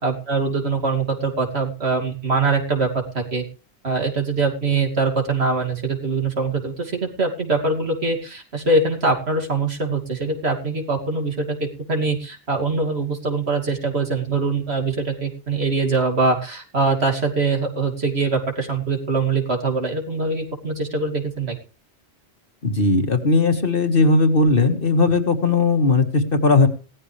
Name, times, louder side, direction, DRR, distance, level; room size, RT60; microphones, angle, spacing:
voice 1, 0.0-3.4 3.8-11.6 11.9-21.6, right 3 dB, 75° right, 2 dB, 2.9 m, -23 dB
voice 2, 22.6-26.7, left 3 dB, 55° left, 6 dB, 2.1 m, -18 dB
17.0 x 14.0 x 3.4 m, 0.36 s
omnidirectional pair, 1.1 m